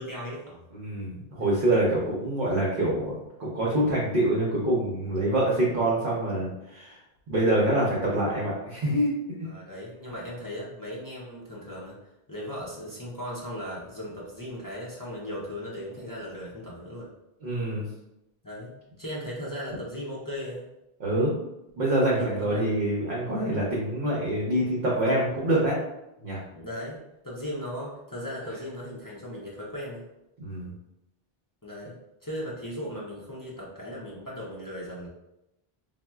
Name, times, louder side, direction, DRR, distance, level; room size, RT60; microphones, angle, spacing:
voice 1, 0.0-0.6 5.4-5.6 9.4-12.0 12.3-17.1 18.4-18.7 19.0-20.7 22.1-22.7 23.3-23.6 26.5-30.1 31.6-35.1, equal, 30° left, -6 dB, 0.4 m, -37 dB
voice 2, 0.7-7.0 7.3-9.1 17.4-17.9 21.0-21.3 21.8-25.8 26.2-26.4 30.4-30.7, right 1 dB, 60° right, -5 dB, 0.8 m, -25 dB
4.0 x 2.1 x 2.2 m, 0.89 s
omnidirectional pair, 1.0 m